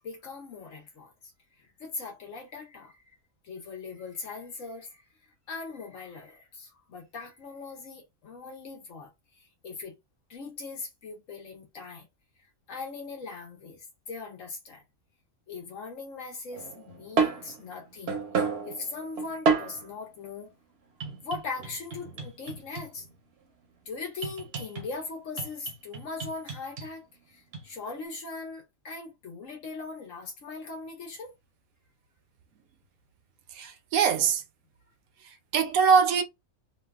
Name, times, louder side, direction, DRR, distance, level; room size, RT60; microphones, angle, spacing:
voice 1, 0.0-1.3 1.6-3.2 3.4-5.0 5.5-10.0 10.3-12.1 12.4-14.8 15.5-20.5 21.2-23.1 23.8-31.3, left 4 dB, 65° left, 1.3 m, -40 dB
sound 1, 16.5-19.9 21.0-23.1 24.2-24.9 25.4-26.9 27.5-27.7, right 5 dB, 55° right, 0.8 m, -31 dB
voice 2, 33.5-34.4 35.2-36.2, right 6 dB, 80° right, 1.0 m, -23 dB
3.0 x 2.3 x 2.3 m
omnidirectional pair, 1.5 m